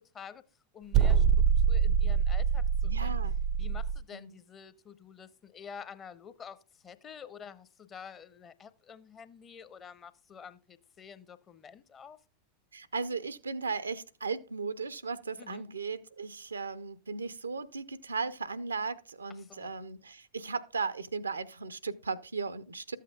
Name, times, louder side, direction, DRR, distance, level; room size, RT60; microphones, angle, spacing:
voice 1, 0.7-1.2 1.6-3.2 3.6-12.2 15.4-15.7 19.3-19.7, left 7 dB, 25° left, 0.8 m, -49 dB
sound 1, 0.9-4.0, right 7 dB, 35° right, 0.5 m, -25 dB
voice 2, 2.9-3.4 4.1-4.4 12.7-23.0, right 4 dB, 75° right, 0.6 m, -36 dB
13.0 x 8.4 x 2.3 m
figure-of-eight pair, 90°, 0 cm